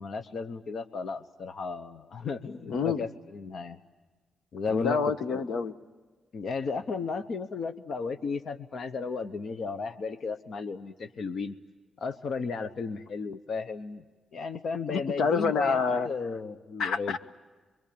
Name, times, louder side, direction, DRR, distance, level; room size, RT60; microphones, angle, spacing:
voice 1, 0.0-3.8 4.5-5.0 5.3-5.4 6.3-11.6 12.0-14.0 14.3-15.8 16.0-17.2, left 4 dB, 55° left, 9 dB, 0.9 m, -34 dB
voice 2, 2.7-3.0 4.7-5.7 14.9-16.1 16.8-17.2, left 5 dB, 80° left, 10 dB, 1.2 m, -27 dB
27.5 x 23.5 x 8.7 m, 1.4 s
wide cardioid pair, 155°, 0 cm